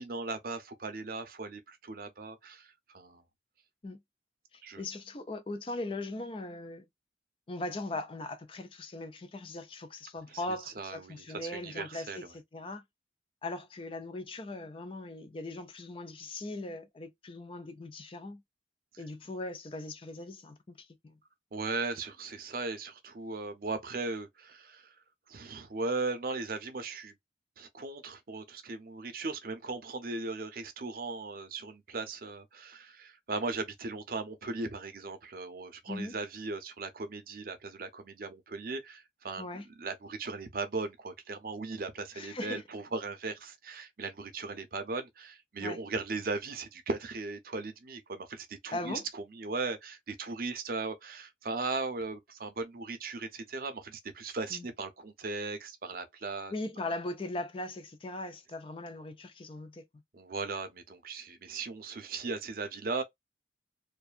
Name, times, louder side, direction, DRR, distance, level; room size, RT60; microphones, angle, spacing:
voice 1, 0.0-3.2 4.6-4.8 10.3-10.4 10.8-12.3 21.5-24.9 25.3-27.1 27.6-56.5 60.1-63.0, right 3 dB, 55° right, 0.6 m, -38 dB
voice 2, 4.5-6.9 7.5-12.8 13.4-18.4 19.0-21.2 35.9-36.2 39.4-39.7 42.1-42.6 45.6-45.8 48.7-49.0 54.5-54.7 56.5-59.9, left 2 dB, 30° left, 0.4 m, -39 dB
2.6 x 2.3 x 2.4 m
head